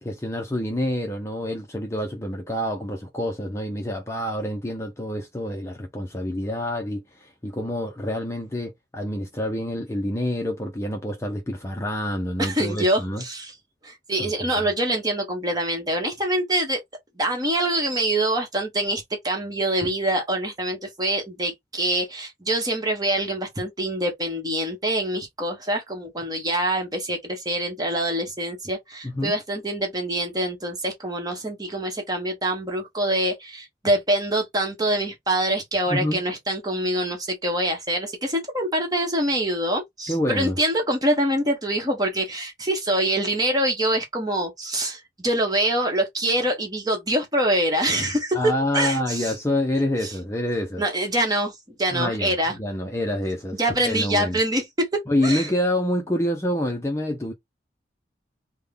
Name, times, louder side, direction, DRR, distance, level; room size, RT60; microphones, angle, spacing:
voice 1, 0.0-13.2 14.2-14.5 29.0-29.3 35.9-36.2 40.1-40.6 48.3-50.8 51.9-53.6 53.8-54.4 55.1-57.3, left 1 dB, 15° left, 0.6 m, -27 dB
voice 2, 12.4-13.5 13.8-16.8 17.2-48.4 48.7-49.3 50.0-50.1 50.8-52.6 53.6-54.9 55.2-55.5, right 1 dB, 20° right, 1.1 m, -25 dB
3.6 x 2.2 x 3.4 m
head